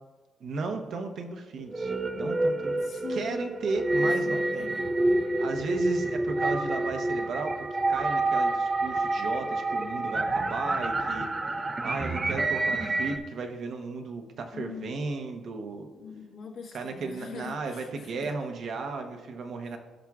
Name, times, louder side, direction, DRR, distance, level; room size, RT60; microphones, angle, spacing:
voice 1, 0.4-2.7 3.1-4.7 5.4-7.6 7.9-11.3 11.8-15.9 16.7-19.8, right 4 dB, 65° right, 4 dB, 0.9 m, -35 dB
sound 1, 1.6-13.2, right 2 dB, 25° right, 0.5 m, -28 dB
voice 2, 2.8-3.5 3.9-5.3 14.1-14.2 14.5-15.0 15.9-18.3, left 5 dB, 70° left, -1 dB, 1.4 m, -43 dB
15.5 x 5.8 x 2.4 m, 1.3 s
cardioid pair, 90°, 0 cm